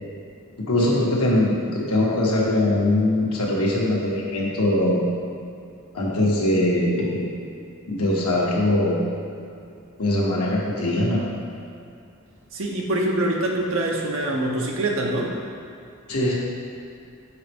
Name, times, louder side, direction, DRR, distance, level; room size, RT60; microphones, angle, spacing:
voice 1, 0.6-5.0 5.9-7.2 7.9-9.0 10.0-11.2 16.1-16.3, left 1 dB, 90° left, -5 dB, 1.3 m, -21 dB
voice 2, 12.5-15.4, right 1 dB, 65° right, -1 dB, 0.8 m, -24 dB
7.3 x 4.1 x 3.6 m, 2.6 s
head